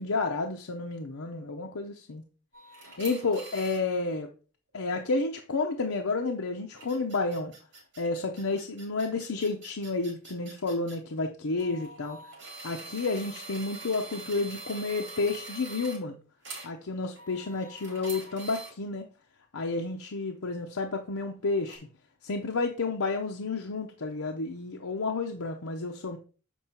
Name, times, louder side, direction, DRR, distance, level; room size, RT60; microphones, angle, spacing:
voice 1, 0.0-2.2 3.0-4.3 4.7-7.5 8.0-12.2 12.6-16.2 16.6-19.1 19.5-21.9 22.2-26.2, left 3 dB, 85° left, 3 dB, 0.7 m, -31 dB
sound 1, 2.5-3.8 6.7-11.0 11.6-16.0 16.4-16.7 17.1-18.7 21.7-21.8, right 3 dB, 55° right, 2.8 m, -44 dB
7.2 x 4.6 x 4.4 m, 0.38 s
head